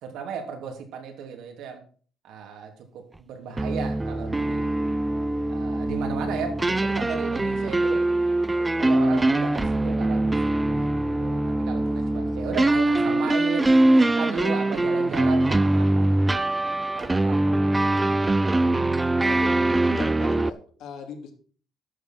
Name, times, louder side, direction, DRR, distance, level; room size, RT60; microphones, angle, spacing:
voice 1, 0.0-1.8 2.2-4.8 5.5-8.1 8.8-10.9 11.2-11.4 11.7-16.2 16.9-18.1, right 6 dB, 75° right, 4 dB, 3.1 m, -35 dB
sound 1, 3.6-20.5, right 2 dB, 10° right, 0.5 m, -23 dB
voice 2, 8.5-8.8 11.7-12.2 17.0-17.1 19.2-19.5 19.9-21.3, left 6 dB, 80° left, 2 dB, 3.1 m, -41 dB
11.0 x 7.1 x 6.1 m, 0.43 s
cardioid pair, 145°, 0 cm